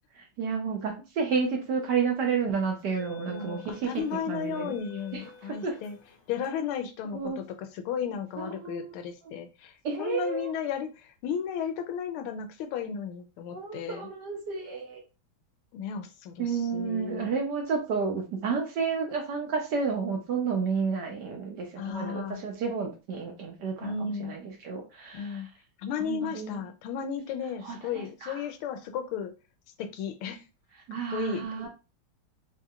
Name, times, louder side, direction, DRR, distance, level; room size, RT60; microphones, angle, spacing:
voice 1, 0.2-4.8 5.1-5.8 7.1-7.4 8.4-8.9 9.2-9.3 9.8-10.5 13.5-15.0 16.4-25.5 26.0-26.6 27.6-28.5 30.9-31.7, right 5 dB, 65° right, 1.1 m, -31 dB
sound 1, 1.7-1.9 2.7-6.5, left 3 dB, 70° left, 1.5 m, -49 dB
voice 2, 3.3-6.0 6.3-14.1 15.7-17.3 21.8-22.4 23.8-24.3 25.1-25.5 25.8-29.3 29.8-30.4 31.1-31.4, left 7 dB, 85° left, 1.5 m, -34 dB
4.5 x 2.8 x 2.3 m
omnidirectional pair, 2.3 m